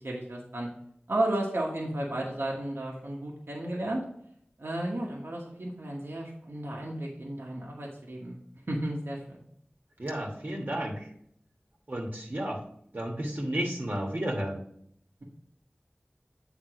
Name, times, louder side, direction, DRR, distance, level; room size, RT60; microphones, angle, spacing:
voice 1, 0.0-0.7 1.1-4.0 4.6-8.4 8.7-9.4, right 1 dB, 80° right, -2 dB, 1.2 m, -33 dB
voice 2, 10.0-11.1 11.9-12.6 12.9-14.6, right 1 dB, 55° right, -1 dB, 1.3 m, -32 dB
8.0 x 3.6 x 4.9 m, 0.69 s
wide cardioid pair, 45°, 4 cm